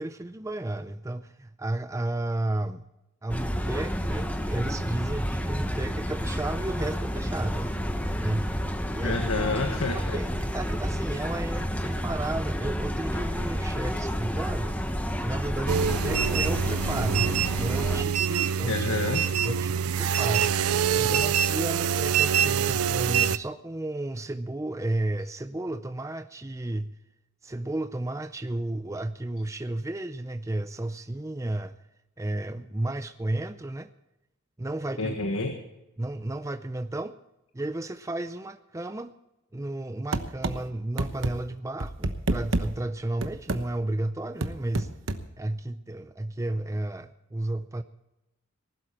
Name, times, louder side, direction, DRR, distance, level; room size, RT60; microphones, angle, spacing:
voice 1, 0.0-2.8 3.2-7.7 8.2-8.6 8.9-9.2 9.9-14.8 15.2-18.9 19.4-26.9 27.4-31.8 32.2-33.9 34.6-35.2 36.0-37.2 37.5-39.1 39.5-44.9 45.4-47.8, right 1 dB, 15° right, 10 dB, 0.5 m, -33 dB
sound 1, 3.3-18.0, equal, 5° left, 1.0 m, -30 dB
voice 2, 9.0-10.2 18.7-19.3 35.0-35.6, left 3 dB, 75° left, 5 dB, 1.6 m, -28 dB
The dying droid by Tony, 15.7-23.4, right 8 dB, 85° right, 0.5 m, -25 dB
sound 2, 40.1-40.6 41.0-41.3 41.8-42.7 43.2-43.6 44.4-45.2, right 2 dB, 60° right, 1.1 m, -27 dB
19.0 x 12.0 x 4.3 m, 0.92 s
head